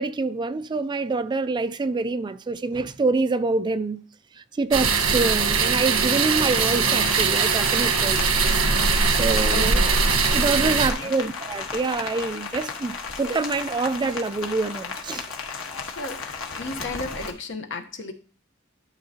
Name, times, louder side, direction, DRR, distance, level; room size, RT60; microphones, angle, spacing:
voice 1, 0.0-4.0 4.3-8.3 9.1-9.8 10.3-15.3, right 3 dB, 20° right, 0.3 m, -26 dB
sound 1, 4.7-10.9, right 5 dB, 80° right, 1.2 m, -21 dB
Rain, 6.4-17.3, left 4 dB, 90° left, 1.3 m, -34 dB
voice 2, 9.5-10.0 10.6-11.1 15.9-18.1, left 2 dB, 60° left, 1.0 m, -34 dB
12.0 x 6.3 x 2.8 m
head